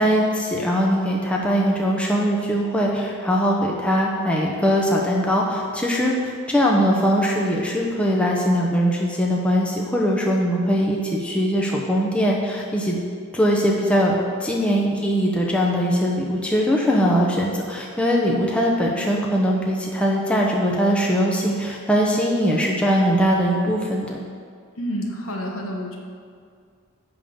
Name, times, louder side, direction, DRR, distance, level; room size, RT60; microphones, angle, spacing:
voice 1, 0.0-6.1 6.5-13.0 13.3-14.1 14.4-24.2, equal, 5° left, -2 dB, 0.8 m, -21 dB
voice 2, 24.8-26.0, equal, 70° left, 0 dB, 1.3 m, -29 dB
10.5 x 3.8 x 7.0 m, 2.2 s
head